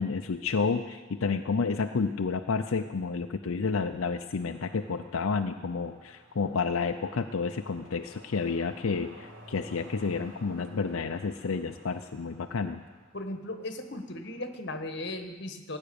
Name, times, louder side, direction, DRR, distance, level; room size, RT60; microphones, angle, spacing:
voice 1, 0.0-12.8, left 4 dB, 85° left, 6 dB, 0.6 m, -30 dB
sound 1, 4.4-14.7, right 1 dB, 65° right, 2.0 m, -54 dB
voice 2, 13.1-15.8, left 1 dB, 55° left, 7 dB, 1.3 m, -37 dB
17.0 x 9.1 x 7.0 m, 1.3 s
head